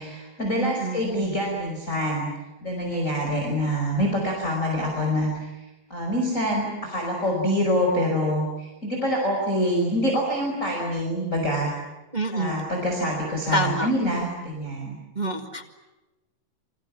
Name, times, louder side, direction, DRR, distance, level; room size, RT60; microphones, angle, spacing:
voice 1, 0.0-2.3 2.6-5.5 5.9-11.7 12.3-15.0, equal, 20° left, 0 dB, 5.3 m, -25 dB
voice 2, 0.5-1.1 12.1-12.6 13.5-13.9 15.1-15.7, right 1 dB, 25° right, 3 dB, 1.0 m, -27 dB
28.5 x 25.5 x 7.4 m, 1.1 s
omnidirectional pair, 4.1 m